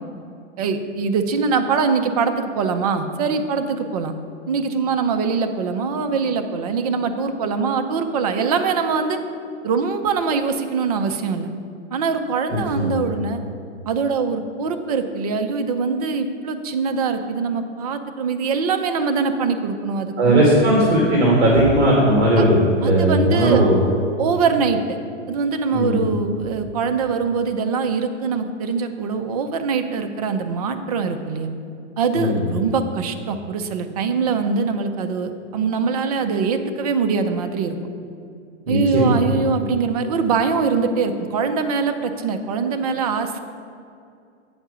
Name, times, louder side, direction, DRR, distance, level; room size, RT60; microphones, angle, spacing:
voice 1, 0.6-4.1 4.5-9.2 9.6-11.5 11.9-13.4 13.9-20.5 22.4-22.5 22.8-23.7 24.2-25.0 25.3-31.5 32.0-37.8 38.7-43.4, right 5 dB, 30° right, 7 dB, 0.5 m, -23 dB
voice 2, 20.2-22.6 22.9-23.8 25.7-26.0 32.1-32.4 38.7-39.2, right 1 dB, 60° right, -3 dB, 2.0 m, -17 dB
8.7 x 4.7 x 6.8 m, 2.4 s
hypercardioid pair, 150°, 37 cm